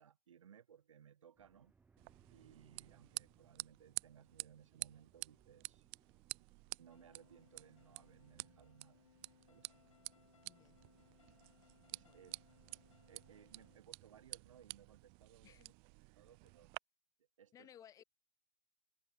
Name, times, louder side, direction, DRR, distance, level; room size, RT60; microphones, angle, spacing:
voice 1, 0.0-1.7 2.3-5.9 6.7-9.0 9.5-9.7 11.9-12.4 13.1-15.7 16.2-16.7 17.4-17.7, right 8 dB, 75° right, 4.8 m, -62 dB
sound 1, 1.4-14.6, right 4 dB, 10° right, 3.7 m, -76 dB
sound 2, 2.0-16.8, right 34 dB, 35° right, 0.9 m, -51 dB
sound 3, 6.9-13.8, left 7 dB, 85° left, 4.4 m, -69 dB
voice 2, 10.5-10.8 11.9-12.3 15.4-15.7 17.5-18.0, left 10 dB, 20° left, 3.1 m, -61 dB
hypercardioid pair, 135°, 16 cm